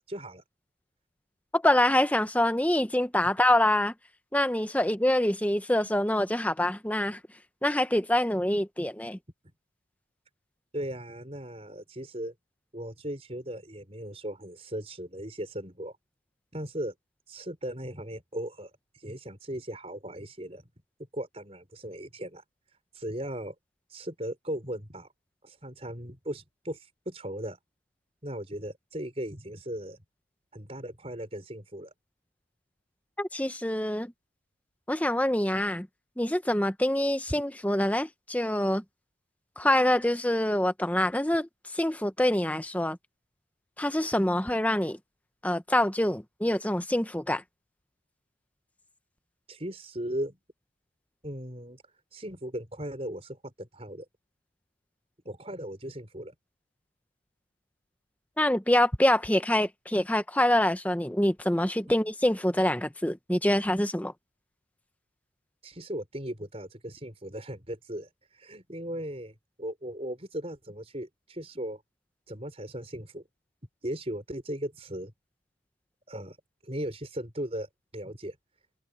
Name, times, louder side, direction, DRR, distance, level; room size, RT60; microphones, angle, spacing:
voice 1, 0.1-0.4 10.7-12.3 12.7-16.0 16.5-16.9 17.3-20.6 21.1-22.4 22.9-23.5 23.9-25.1 25.4-27.6 28.2-30.0 30.5-31.9 49.5-50.4 51.2-51.8 52.1-54.1 55.3-56.3 65.6-68.1 68.3-71.8 72.3-73.2 73.8-75.1 76.1-76.4 76.6-78.4, right 1 dB, 30° right, 5.6 m, -37 dB
voice 2, 1.5-3.9 4.3-7.2 7.6-9.2 33.2-34.1 34.9-35.9 36.2-38.8 39.6-43.0 43.8-45.0 45.4-47.4 58.4-64.1, left 1 dB, 10° left, 0.9 m, -25 dB
head